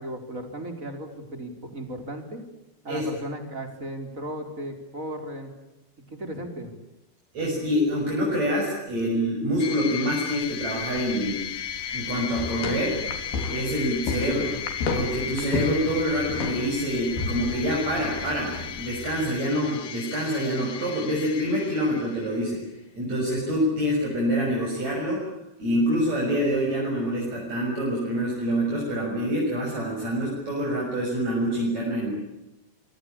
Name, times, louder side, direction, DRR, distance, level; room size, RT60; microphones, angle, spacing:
voice 1, 0.0-2.4 2.8-5.5 6.1-6.7, right 1 dB, 20° right, 6 dB, 4.5 m, -35 dB
voice 2, 7.3-11.4 11.9-13.0 13.5-14.5 14.9-22.6 22.9-25.2 25.6-32.1, equal, 45° right, -2 dB, 7.9 m, -26 dB
sound 1, 9.6-22.4, left 9 dB, 60° left, 1.9 m, -35 dB
sound 2, 10.4-19.3, left 3 dB, 75° left, 5.4 m, -33 dB
27.5 x 24.0 x 8.7 m, 0.93 s
omnidirectional pair, 4.5 m